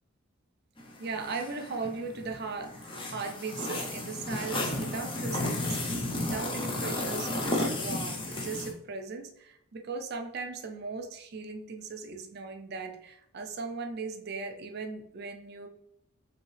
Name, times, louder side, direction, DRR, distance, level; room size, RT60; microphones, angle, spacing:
sound 1, 0.8-8.7, left 2 dB, 25° left, 0.5 m, -33 dB
voice 1, 1.0-15.7, right 4 dB, 50° right, 5 dB, 0.4 m, -38 dB
5.1 x 2.8 x 3.2 m, 0.79 s
head